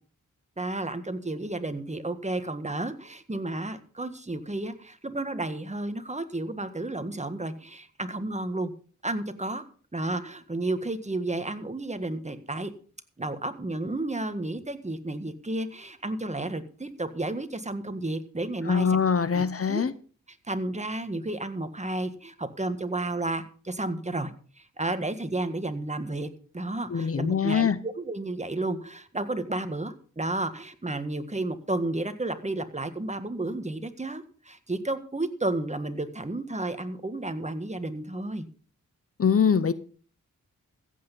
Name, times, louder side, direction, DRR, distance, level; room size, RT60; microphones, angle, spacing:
voice 1, 0.6-8.7 9.0-9.6 9.9-12.7 13.2-19.0 19.3-19.9 20.3-24.3 24.6-26.3 26.5-38.5, right 2 dB, 20° right, 9 dB, 1.6 m, -32 dB
voice 2, 18.7-19.9 26.9-27.8 39.2-39.7, left 6 dB, 45° left, 15 dB, 0.8 m, -23 dB
15.0 x 8.5 x 5.4 m, 0.42 s
cardioid pair, 65°, 32 cm